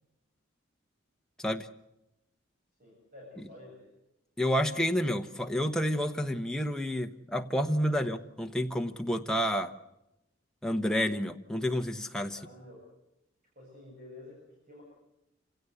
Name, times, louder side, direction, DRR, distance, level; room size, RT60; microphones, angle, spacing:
voice 1, 2.8-3.9 7.9-8.1 12.3-12.9 13.6-14.8, left 2 dB, 45° right, 7.8 m, -50 dB
voice 2, 4.4-9.7 10.6-12.4, equal, 5° left, 1.1 m, -29 dB
27.5 x 17.0 x 8.1 m
head